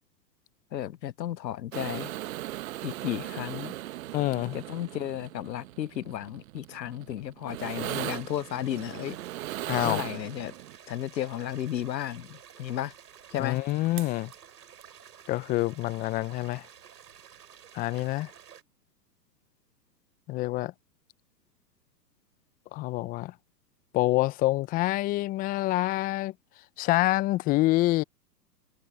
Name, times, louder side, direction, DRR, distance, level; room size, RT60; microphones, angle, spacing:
voice 1, 0.7-2.1 2.8-3.7 4.5-9.2 9.8-10.5 10.9-12.9 13.3-13.6, left 11 dB, 85° left, 0.7 m, -33 dB
sound 1, 1.7-10.8 13.7-13.8 14.0-14.3 14.8-14.9, right 15 dB, 55° right, 1.3 m, -38 dB
voice 2, 4.1-4.6 9.7-10.0 13.4-14.3 15.3-16.7 17.7-18.3 20.3-20.7 22.7-23.3 23.9-26.3 26.8-28.0, left 18 dB, 20° left, 0.6 m, -26 dB
sound 2, 7.6-18.6, right 9 dB, 75° right, 6.9 m, -52 dB
hypercardioid pair, 120°, 49 cm